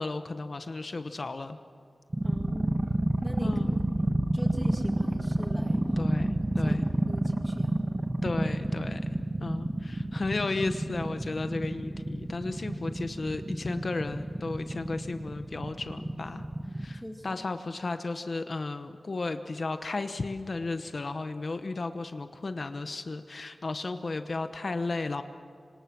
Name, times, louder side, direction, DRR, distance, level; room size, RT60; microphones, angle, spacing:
voice 1, 0.0-1.6 3.4-3.7 6.0-6.9 8.2-9.0 9.4-16.4 16.8-25.2, left 3 dB, 50° left, 9 dB, 1.0 m, -34 dB
sound 1, 2.1-17.0, right 1 dB, 25° right, 1.2 m, -29 dB
voice 2, 2.2-2.8 3.2-3.5 3.9-5.8 6.2-6.8 7.1-7.8 16.6-17.4, equal, ahead, 3 dB, 2.1 m, -42 dB
26.5 x 26.0 x 6.2 m, 2.3 s
wide cardioid pair, 100°, 0 cm